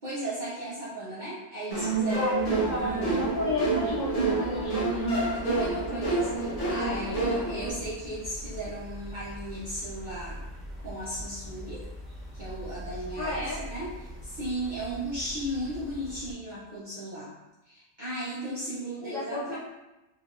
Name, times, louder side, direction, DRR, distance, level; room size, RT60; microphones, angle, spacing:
voice 1, 0.0-3.3 5.3-10.4 10.8-11.8 12.3-17.3 17.7-19.6, right 1 dB, 45° right, -10 dB, 0.8 m, -36 dB
sound 1, 1.7-7.7, right 3 dB, 35° left, 0.7 m, -28 dB
voice 2, 2.1-5.1 13.2-13.6 19.0-19.6, left 2 dB, 80° left, -7 dB, 1.1 m, -32 dB
sound 2, 2.4-16.3, equal, ahead, 0.5 m, -42 dB
3.2 x 2.9 x 2.5 m, 0.99 s
omnidirectional pair, 1.3 m